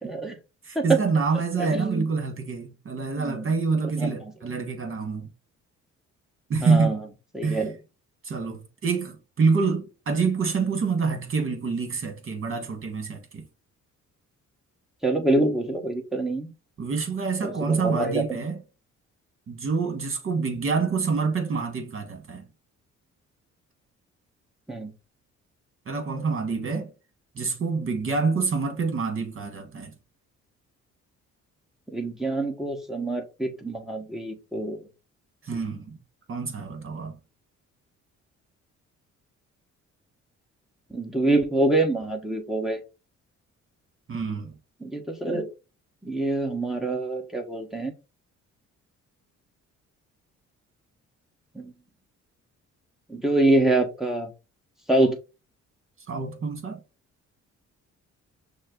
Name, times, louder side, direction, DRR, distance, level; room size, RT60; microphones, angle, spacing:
voice 1, 0.0-0.4 0.7-1.0 1.6-2.1 3.2-3.5 4.0-4.1 6.6-7.0 7.3-7.7 15.0-16.5 17.4-18.4 24.7-24.9 31.9-34.8 40.9-42.8 44.8-45.5 46.0-47.9 51.5-51.7 53.1-54.3 54.9-55.2, right 2 dB, ahead, 1.3 m, -25 dB
voice 2, 0.6-5.3 6.5-7.0 7.4-7.6 8.2-13.4 16.8-18.6 19.5-22.5 25.8-26.9 27.3-29.9 35.4-36.0 36.3-37.2 44.1-44.5 56.1-56.8, right 4 dB, 45° right, 1.6 m, -27 dB
6.3 x 2.2 x 3.8 m
cardioid pair, 90°, 30 cm